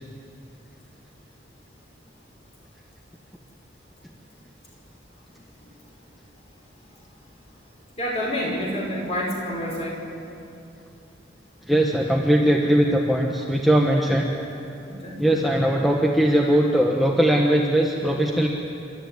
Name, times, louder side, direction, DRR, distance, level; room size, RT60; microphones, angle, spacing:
voice 1, 8.0-10.0 14.9-15.2, equal, 30° left, -2 dB, 5.4 m, -28 dB
voice 2, 11.6-14.3 15.2-18.5, right 1 dB, ahead, -1 dB, 1.2 m, -20 dB
29.0 x 13.5 x 9.5 m, 2.7 s
head